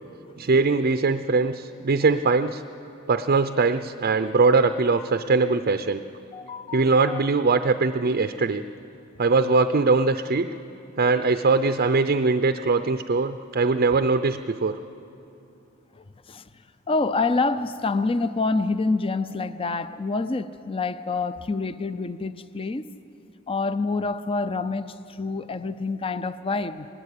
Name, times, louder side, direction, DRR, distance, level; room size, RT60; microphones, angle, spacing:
voice 1, 0.4-2.6 3.1-6.0 6.7-8.6 9.2-10.5 11.0-14.8, right 4 dB, 45° right, 0.5 m, -21 dB
voice 2, 6.3-7.2 16.0-16.4 16.9-22.9 23.5-26.9, left 3 dB, 25° left, 0.5 m, -27 dB
20.5 x 20.0 x 8.4 m
head